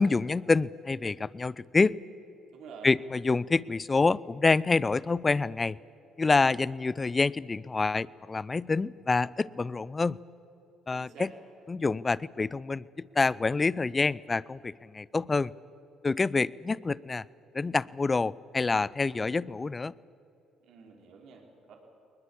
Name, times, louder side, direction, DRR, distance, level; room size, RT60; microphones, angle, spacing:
voice 1, 0.0-2.0 2.8-5.8 6.2-10.2 10.9-11.3 11.7-15.5 16.0-17.2 17.5-19.9, left 3 dB, 30° left, 22 dB, 0.5 m, -27 dB
voice 2, 2.5-2.9 10.9-11.3 20.6-21.8, right 6 dB, 70° right, 1 dB, 4.5 m, -48 dB
21.0 x 20.5 x 8.6 m, 2.8 s
supercardioid pair, 70°, 0 cm